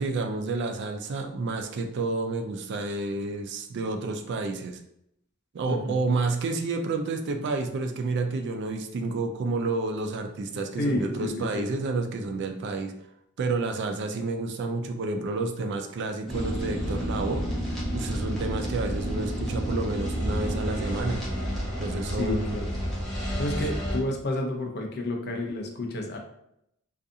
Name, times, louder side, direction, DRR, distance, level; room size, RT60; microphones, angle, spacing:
voice 1, 0.0-4.8 5.5-12.9 13.4-17.4 17.9-21.2 21.8-22.6, right 3 dB, 55° right, 5 dB, 0.3 m, -30 dB
voice 2, 5.7-6.0 10.8-11.7 22.2-22.7 23.4-26.2, left 1 dB, 50° left, 2 dB, 0.5 m, -30 dB
sound 1, 16.3-24.0, equal, ahead, 0.6 m, -30 dB
2.5 x 2.3 x 2.6 m, 0.78 s
head